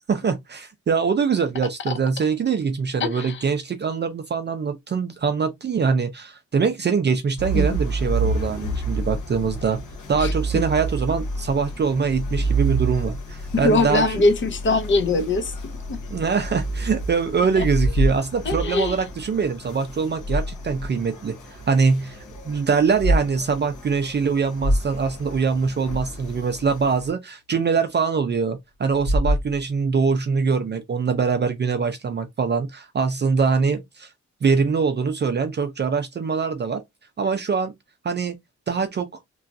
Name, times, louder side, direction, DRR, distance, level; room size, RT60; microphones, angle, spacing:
voice 1, 0.1-9.8 10.1-14.2 16.1-34.1 34.4-36.8 37.2-37.7 38.0-38.3 38.7-39.2, right 5 dB, 35° right, 0.4 m, -23 dB
voice 2, 3.0-3.4 7.5-7.8 10.2-10.3 13.5-15.5 15.9-16.0 17.5-17.6 18.5-19.0, left 2 dB, 40° left, 0.6 m, -22 dB
sound 1, 7.4-27.1, right 3 dB, 70° left, 1.2 m, -30 dB
sound 2, 15.3-17.0 17.2-19.0 19.9-21.0 21.4-21.5 22.8-23.2 23.6-23.8 24.2-24.3 24.5-25.9 28.8-30.0, equal, 55° left, 1.4 m, -26 dB
3.0 x 2.4 x 2.6 m
wide cardioid pair, 145°, 30 cm